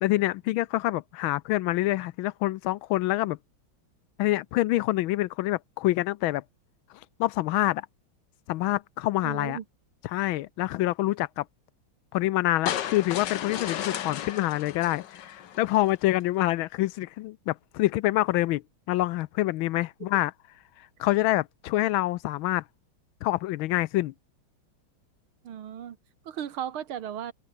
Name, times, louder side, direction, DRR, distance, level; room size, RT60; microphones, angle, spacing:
voice 1, 0.0-3.4 4.2-6.4 7.2-7.9 8.5-9.6 10.0-11.4 12.1-18.6 18.9-20.3 21.0-22.6 23.2-24.1, left 16 dB, 75° left, 1.3 m, -26 dB
voice 2, 9.2-9.6 25.4-26.0 26.3-27.3, right 9 dB, 75° right, 2.2 m, -35 dB
sound 1, 12.7-15.9, left 10 dB, 60° left, 1.6 m, -34 dB
open air
omnidirectional pair, 2.3 m